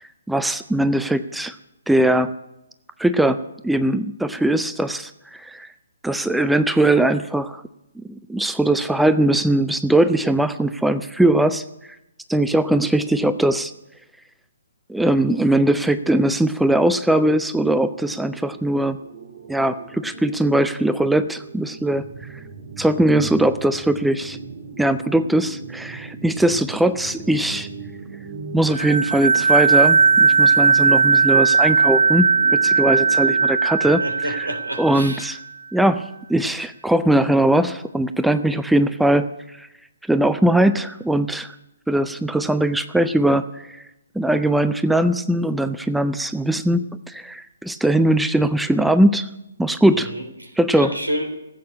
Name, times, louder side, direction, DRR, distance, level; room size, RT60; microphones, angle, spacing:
voice 1, 0.0-1.6 1.9-2.3 3.0-5.7 6.0-7.6 8.1-11.6 12.3-13.7 14.9-19.0 19.5-22.4 22.8-24.4 24.8-27.7 28.5-34.5 34.8-35.4 35.7-39.7 40.1-41.5 41.9-43.8 44.1-49.3 49.6-50.1 50.6-50.9, right 1 dB, ahead, 12 dB, 0.4 m, -20 dB
sound 1, 16.4-33.5, right 4 dB, 40° right, 1.8 m, -38 dB
sound 2, 28.7-35.2, right 5 dB, 60° right, 0.7 m, -17 dB
voice 2, 33.8-35.2 49.9-50.5 50.8-51.4, equal, 80° right, 7 dB, 3.4 m, -29 dB
15.0 x 8.5 x 9.8 m, 0.89 s
figure-of-eight pair, 130°, 0 cm